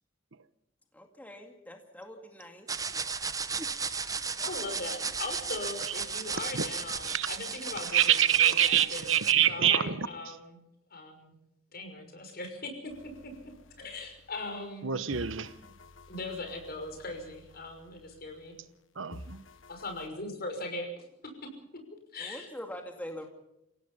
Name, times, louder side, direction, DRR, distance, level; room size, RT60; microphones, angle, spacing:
voice 1, 0.9-2.7 22.2-23.2, equal, 10° left, 2.2 m, -43 dB
sound 1, 2.7-9.3, right 5 dB, 20° right, 0.9 m, -35 dB
voice 2, 4.4-9.1 9.5-10.6 10.9-11.3 11.7-12.9 13.8-15.0 16.1-18.5 19.7-21.5 22.1-22.5, left 2 dB, 50° left, 5.9 m, -39 dB
voice 3, 7.9-10.1 14.8-15.5 19.0-19.4, right 10 dB, 80° right, 1.1 m, -25 dB
sound 2, 12.9-14.8 15.1-18.8 19.1-20.1, left 1 dB, 75° left, 1.4 m, -52 dB
28.0 x 17.0 x 5.5 m
head